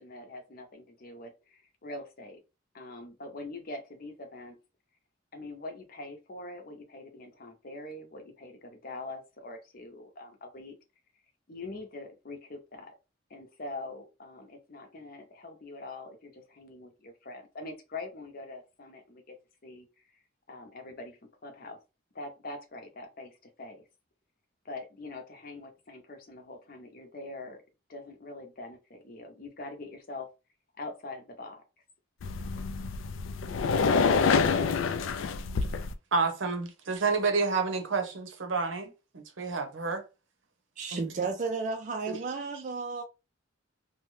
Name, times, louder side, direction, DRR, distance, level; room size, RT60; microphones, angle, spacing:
voice 1, 0.0-2.4 2.7-4.6 5.3-10.8 11.5-12.9 13.3-19.4 19.6-19.9 20.1-20.2 20.5-21.8 22.1-23.8 24.6-27.6 27.9-30.3 30.8-31.6, left 2 dB, 50° left, 0.7 m, -43 dB
sound 1, 32.2-35.9, left 5 dB, 80° left, 0.3 m, -27 dB
voice 2, 36.1-40.0 40.9-41.0 42.1-42.2, right 4 dB, 75° right, 0.7 m, -29 dB
voice 3, 40.8-43.0, right 4 dB, 40° right, 0.3 m, -33 dB
2.7 x 2.1 x 3.1 m
head